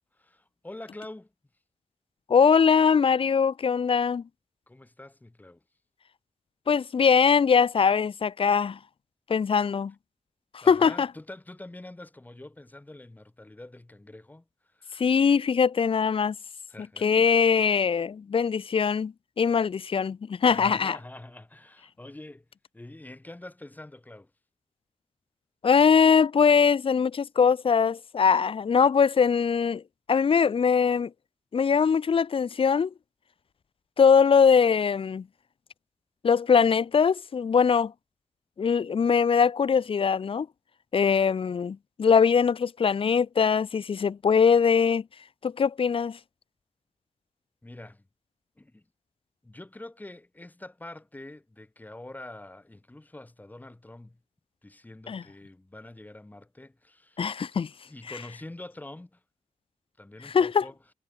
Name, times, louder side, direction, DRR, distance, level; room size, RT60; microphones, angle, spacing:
voice 1, 0.1-1.3 4.7-5.6 10.6-15.0 16.7-17.3 20.5-22.4 22.7-24.3 47.6-48.1 48.6-48.8 49.4-54.2 54.6-57.3 57.9-59.2 60.0-60.8, left 1 dB, 10° left, 1.6 m, -45 dB
voice 2, 2.3-4.2 6.7-8.8 9.3-9.9 10.5-11.1 15.0-16.4 17.0-21.0 25.6-29.8 30.1-31.1 31.5-32.9 34.0-35.3 36.2-37.9 38.6-40.5 40.9-45.0 45.4-46.2 55.1-55.2 57.2-57.7 60.2-60.6, left 6 dB, 45° left, 0.6 m, -22 dB
wide cardioid pair, 170°, 13 cm